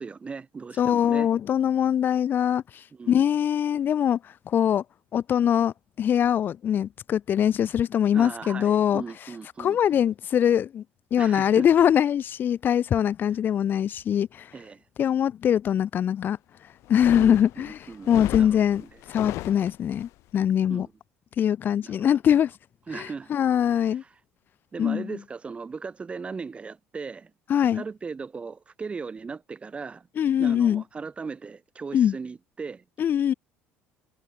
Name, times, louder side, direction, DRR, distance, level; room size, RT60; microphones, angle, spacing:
voice 1, 0.0-1.3 2.9-3.3 8.1-10.0 11.2-11.7 14.5-14.8 17.2-18.1 18.4-19.0 20.7-20.9 21.8-22.1 22.9-23.3 23.6-24.2 24.7-27.3 27.7-30.1 30.4-32.8, right 5 dB, 25° right, 4.5 m, -38 dB
voice 2, 0.8-2.6 3.1-4.2 4.5-4.8 5.1-9.0 9.6-10.8 11.1-14.5 15.0-16.4 16.9-17.8 18.1-18.8 19.1-20.9 21.4-22.5 22.9-24.0 24.8-25.1 27.5-27.8 30.2-30.8 31.9-32.2 33.0-33.3, left 9 dB, 45° left, 1.1 m, -22 dB
sound 1, 16.8-20.1, left 18 dB, 70° left, 2.6 m, -35 dB
cardioid pair, 115°, 5 cm